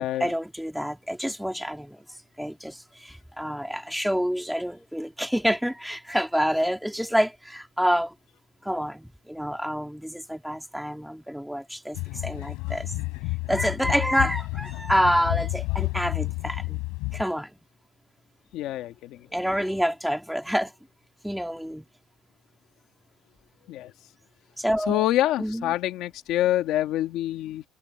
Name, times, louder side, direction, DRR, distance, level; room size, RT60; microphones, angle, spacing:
voice 1, 0.0-2.0 2.4-8.1 8.6-12.9 13.5-16.8 17.1-17.5 19.3-20.7 21.2-21.9 24.6-25.0 25.4-25.7, equal, ahead, 1.9 m, -27 dB
sound 1, 11.9-17.2, left 25 dB, 90° left, 4.9 m, -30 dB
voice 2, 18.5-19.2 23.7-23.9 24.9-27.6, left 14 dB, 55° left, 1.6 m, -26 dB
cardioid pair, 165°, 0 cm